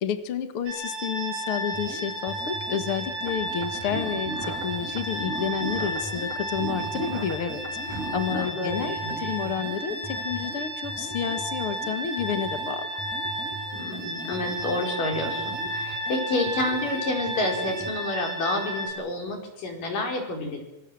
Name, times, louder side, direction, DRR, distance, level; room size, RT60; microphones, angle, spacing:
voice 1, 0.0-7.6 7.9-13.0, left 8 dB, 50° left, 8 dB, 2.2 m, -30 dB
sound 1, 0.7-18.9, right 1 dB, 45° right, 9.2 m, -33 dB
sound 2, 1.7-17.9, right 1 dB, ahead, 7.4 m, -41 dB
sound 3, 3.2-8.5, right 2 dB, 25° right, 2.6 m, -37 dB
voice 2, 8.3-9.6 13.7-20.6, left 2 dB, 80° left, 3 dB, 6.2 m, -29 dB
27.0 x 26.0 x 7.7 m, 0.89 s
omnidirectional pair, 3.7 m